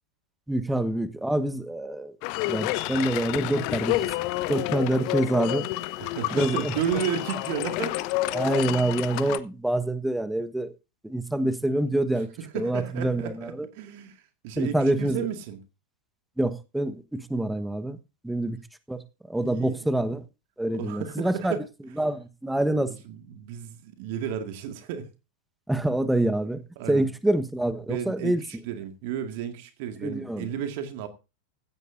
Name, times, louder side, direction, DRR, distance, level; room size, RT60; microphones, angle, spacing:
voice 1, 0.5-2.1 2.5-4.0 4.5-5.7 6.3-6.7 8.3-10.7 11.0-12.3 12.5-13.7 14.6-15.3 16.4-18.0 18.2-18.6 18.9-19.0 19.3-20.2 20.6-21.5 22.0-22.9 25.7-26.6 26.9-28.4 30.0-30.5, right 1 dB, 5° right, 1.2 m, -26 dB
sound 1, 2.2-9.4, left 17 dB, 45° left, 0.9 m, -29 dB
voice 2, 6.0-8.1 12.4-15.6 19.4-19.9 20.7-21.6 22.9-25.1 26.8-27.1 27.9-31.1, right 8 dB, 50° right, 2.0 m, -33 dB
16.5 x 15.5 x 2.6 m
figure-of-eight pair, 90°, 0 cm